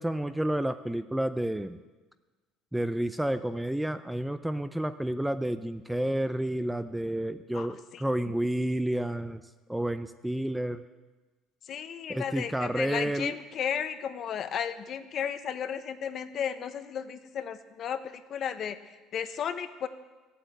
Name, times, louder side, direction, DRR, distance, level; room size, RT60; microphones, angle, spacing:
voice 1, 0.0-1.8 2.7-9.4 9.7-10.8 12.1-13.3, right 1 dB, 5° right, 11 dB, 0.5 m, -30 dB
voice 2, 11.7-19.9, left 8 dB, 45° left, 10 dB, 0.9 m, -34 dB
14.0 x 8.5 x 7.9 m, 1.2 s
cardioid pair, 130°, 0 cm